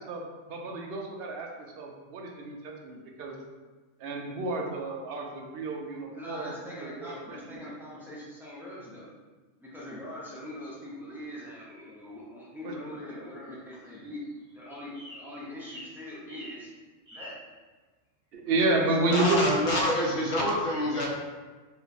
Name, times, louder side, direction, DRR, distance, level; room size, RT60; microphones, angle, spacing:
voice 1, 0.5-1.5 1.8-3.3 4.0-6.5 6.8-7.1 18.5-19.4, right 2 dB, 60° right, 0 dB, 0.6 m, -30 dB
voice 2, 5.8-9.1 9.6-14.2 14.5-16.7 17.1-17.4 18.8-19.0, left 1 dB, 5° right, -8 dB, 0.4 m, -42 dB
sound 1, 13.7-14.5 14.9-15.3 15.6-16.0 16.3-16.6 17.1-17.4, equal, 20° right, 1.5 m, -46 dB
voice 3, 19.1-21.1, equal, 75° left, -2 dB, 1.1 m, -26 dB
3.2 x 2.3 x 3.9 m, 1.3 s
omnidirectional pair, 1.4 m